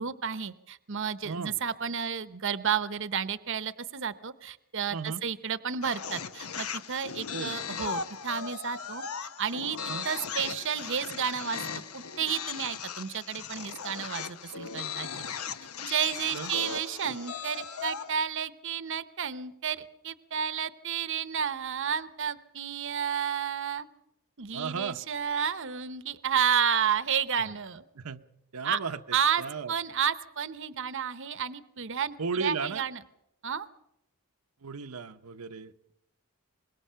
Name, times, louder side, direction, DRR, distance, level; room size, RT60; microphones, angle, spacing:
voice 1, 0.0-9.8 10.0-11.6 11.9-15.2 15.8-23.9 24.4-27.8 28.6-28.8 29.1-29.4 29.7-33.0 33.4-33.7, right 7 dB, 60° right, 14 dB, 0.8 m, -31 dB
voice 2, 1.2-1.6 4.9-5.2 7.3-7.5 9.8-10.1 16.3-16.5 24.5-25.0 27.4-27.5 27.9-28.2 28.5-29.0 29.4-29.7 32.2-32.8 34.6-35.9, right 5 dB, 90° right, 7 dB, 0.9 m, -35 dB
sound 1, 5.8-18.1, left 6 dB, 80° left, 1.1 m, -38 dB
25.0 x 21.5 x 5.7 m, 0.80 s
head